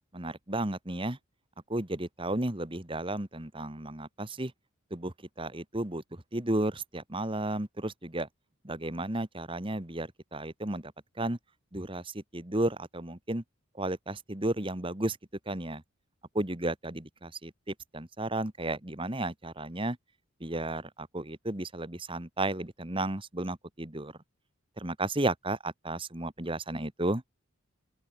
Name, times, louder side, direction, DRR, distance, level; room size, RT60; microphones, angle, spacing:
voice 1, 0.1-1.2 1.7-4.5 4.9-6.0 6.3-8.3 8.6-10.9 11.2-11.4 11.7-13.4 13.7-15.2 15.5-15.8 16.3-20.0 20.4-24.1 24.8-27.2, right 1 dB, 25° right, 1.6 m, -33 dB
open air
head